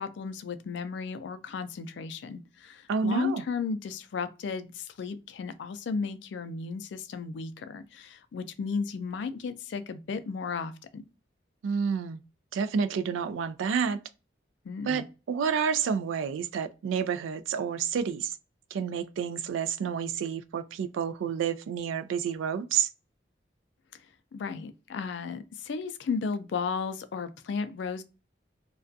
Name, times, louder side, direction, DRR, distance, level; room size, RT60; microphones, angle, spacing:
voice 1, 0.0-11.0 14.6-15.1 23.9-24.0 24.3-28.0, left 5 dB, 65° left, 0.3 m, -34 dB
voice 2, 2.9-3.4 11.6-12.2 12.5-14.0 14.8-18.3 18.7-22.9, right 6 dB, 80° right, 0.3 m, -29 dB
2.4 x 2.2 x 2.5 m
head